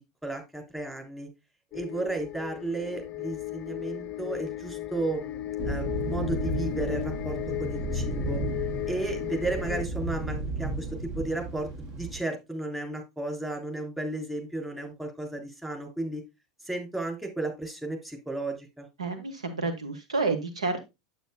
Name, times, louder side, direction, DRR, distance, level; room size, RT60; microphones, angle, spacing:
voice 1, 0.2-1.3 1.7-8.4 8.9-10.9 11.1-11.7 12.0-16.2 16.6-18.9, right 2 dB, 5° right, 2 dB, 3.3 m, -34 dB
sound 1, 1.7-9.8, left 13 dB, 35° left, 0.5 m, -35 dB
sound 2, 5.6-12.2, right 1 dB, 50° right, 2.6 m, -33 dB
voice 2, 19.0-20.8, right 3 dB, 75° right, 7 dB, 1.3 m, -29 dB
9.1 x 8.2 x 2.2 m, 0.22 s
figure-of-eight pair, 85°, 3 cm